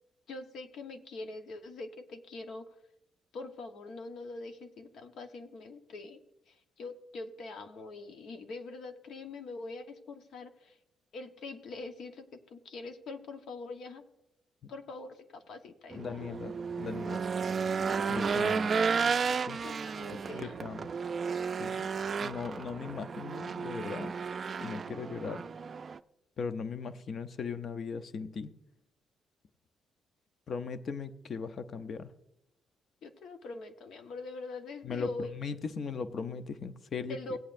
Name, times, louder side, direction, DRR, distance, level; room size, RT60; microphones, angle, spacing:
voice 1, 0.3-2.7 3.3-6.2 6.5-10.8 11.1-14.0 14.7-16.4 19.6-20.8 33.0-35.4 37.1-37.4, left 3 dB, 70° left, 6 dB, 1.1 m, -43 dB
voice 2, 15.9-17.3 18.1-18.7 19.5-19.6 20.1-20.9 21.6-21.9 22.2-24.1 24.6-25.4 26.4-28.5 30.5-32.1 34.8-37.4, left 5 dB, 50° left, 11 dB, 0.6 m, -38 dB
Race car auto racing / Engine, 15.9-26.0, right 5 dB, 45° right, 0.4 m, -33 dB
17.0 x 8.6 x 2.6 m, 0.82 s
cardioid pair, 90°, 0 cm